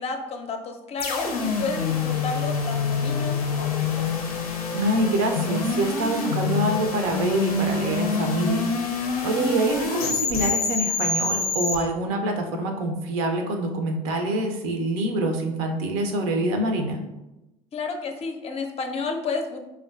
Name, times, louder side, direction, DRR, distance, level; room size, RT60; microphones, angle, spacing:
voice 1, 0.0-4.1 17.7-19.6, left 4 dB, 35° left, 4 dB, 0.5 m, -31 dB
sound 1, 1.0-11.8, left 4 dB, 85° left, 0.5 m, -26 dB
voice 2, 4.7-8.9 9.2-17.0, right 1 dB, 65° right, 4 dB, 0.5 m, -25 dB
3.6 x 2.2 x 2.4 m, 0.96 s
hypercardioid pair, 65°, 18 cm